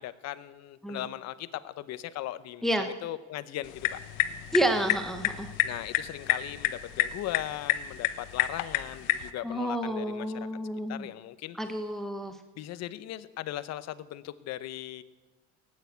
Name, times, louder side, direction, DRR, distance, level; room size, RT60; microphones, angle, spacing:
voice 1, 0.0-4.0 5.6-10.5 10.9-11.6 12.5-15.0, left 14 dB, 55° left, 15 dB, 0.9 m, -38 dB
sound 1, 3.6-9.3, left 14 dB, 85° left, 1.1 m, -30 dB
voice 2, 4.5-5.5 9.4-11.1 11.6-12.4, right 1 dB, ahead, 6 dB, 0.9 m, -30 dB
17.5 x 9.6 x 8.1 m, 1.2 s
cardioid pair, 150°, 31 cm